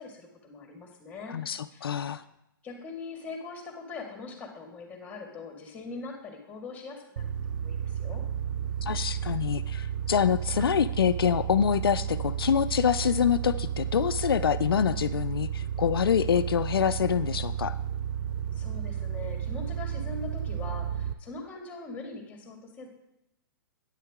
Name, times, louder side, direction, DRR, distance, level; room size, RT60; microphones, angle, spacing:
voice 1, 0.0-1.4 1.7-2.1 2.6-7.3 7.6-8.2 18.5-22.9, left 3 dB, 10° left, 2 dB, 2.0 m, -42 dB
voice 2, 1.3-2.2 8.8-17.7, left 8 dB, 85° left, 11 dB, 0.4 m, -26 dB
sound 1, 7.2-21.1, right 9 dB, 55° right, 0.5 m, -32 dB
9.0 x 8.0 x 3.6 m, 0.85 s
hypercardioid pair, 130°, 12 cm